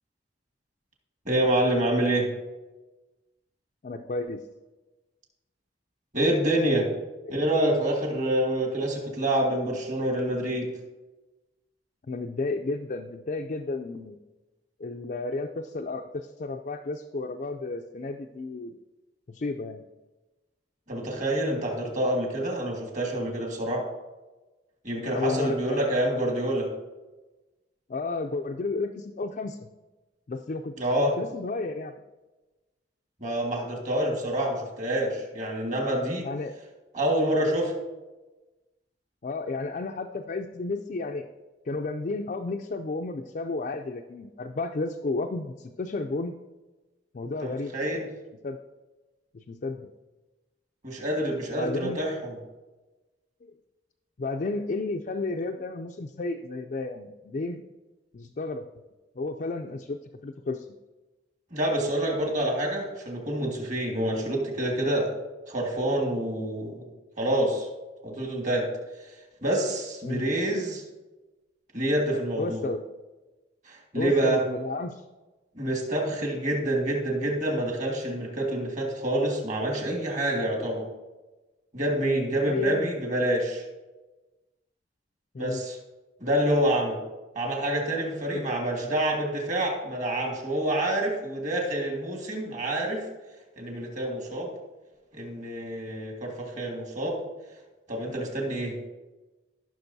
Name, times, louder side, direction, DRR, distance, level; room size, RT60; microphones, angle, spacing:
voice 1, 1.3-2.3 6.1-6.9 7.3-10.7 20.9-23.8 24.8-26.7 30.8-31.1 33.2-36.3 36.9-37.7 47.4-48.1 50.8-52.4 61.5-65.1 65.5-66.8 67.2-67.7 68.0-68.7 69.4-70.8 71.7-72.7 73.7-74.4 75.6-80.9 81.7-83.6 85.4-85.8 86.2-87.0 87.4-93.1 93.6-94.5 95.1-97.2 97.9-98.8, right 1 dB, 40° right, 1 dB, 1.8 m, -27 dB
voice 2, 3.8-4.4 7.2-7.3 12.1-14.2 14.8-18.8 19.3-19.8 25.0-25.9 27.9-29.7 30.3-31.9 36.2-36.6 39.2-41.3 41.7-46.3 47.1-48.0 48.4-48.6 49.3-49.9 51.5-52.0 53.4-53.5 54.2-57.6 58.1-58.7 59.2-60.7 70.0-70.2 72.4-72.8 73.9-75.0 82.5-82.9 85.3-85.6 88.3-88.5, left 3 dB, 45° left, 4 dB, 0.4 m, -32 dB
14.0 x 6.2 x 2.7 m, 1.1 s
head